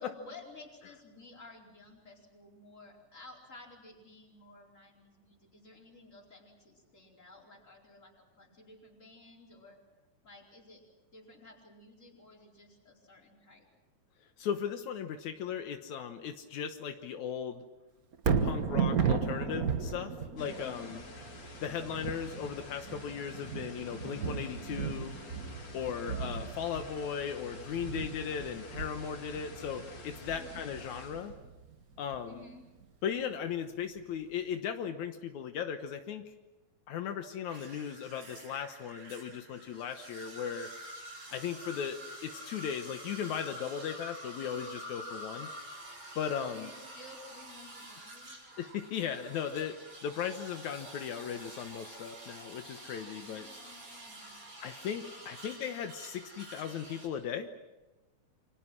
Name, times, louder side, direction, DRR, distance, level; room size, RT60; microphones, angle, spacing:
voice 1, 0.0-9.8 10.2-10.9 11.1-13.7 20.6-21.0 25.8-26.2 30.3-30.7 32.2-32.7 46.5-48.5 53.3-54.5 55.1-55.9, left 3 dB, 25° left, -1 dB, 4.8 m, -54 dB
voice 2, 14.4-17.6 18.4-21.0 21.6-25.1 25.7-31.3 32.0-32.4 33.0-36.2 36.9-40.7 41.3-45.5 46.2-46.7 48.6-53.5 54.6-57.5, left 8 dB, 80° left, 6 dB, 2.5 m, -37 dB
Thunder, 18.1-32.3 32.8-32.9, right 6 dB, 45° right, 1.2 m, -35 dB
sound 1, 20.4-31.4, left 2 dB, 60° left, 5.3 m, -49 dB
sound 2, 37.5-57.1, right 1 dB, 70° right, 9.3 m, -48 dB
28.5 x 25.5 x 6.1 m, 1.1 s
omnidirectional pair, 3.4 m